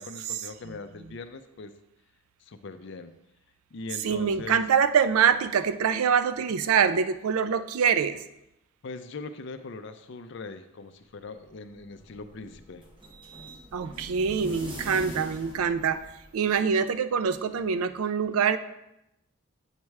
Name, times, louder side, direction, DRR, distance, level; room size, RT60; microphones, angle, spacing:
voice 1, 0.0-1.7 2.5-3.1 3.7-4.6 8.8-12.8, left 3 dB, 55° left, 9 dB, 0.4 m, -41 dB
voice 2, 4.0-8.2 13.7-16.0 16.3-18.6, right 6 dB, 90° right, 12 dB, 0.4 m, -24 dB
sound 1, 11.6-16.6, right 1 dB, 25° right, 0.8 m, -43 dB
8.1 x 3.2 x 4.7 m, 0.88 s
head